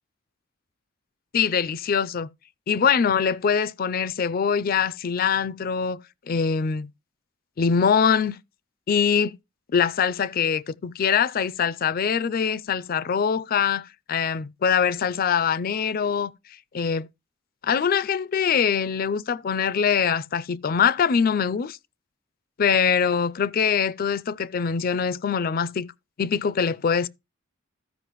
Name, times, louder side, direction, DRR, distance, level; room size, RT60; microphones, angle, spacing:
voice 1, 1.3-2.3 2.7-6.0 6.3-6.9 7.6-8.4 8.9-9.4 9.7-16.3 16.7-17.1 17.6-21.8 22.6-25.9 26.2-27.1, left 6 dB, 45° left, 0.4 m, -23 dB
15.0 x 5.3 x 3.0 m
head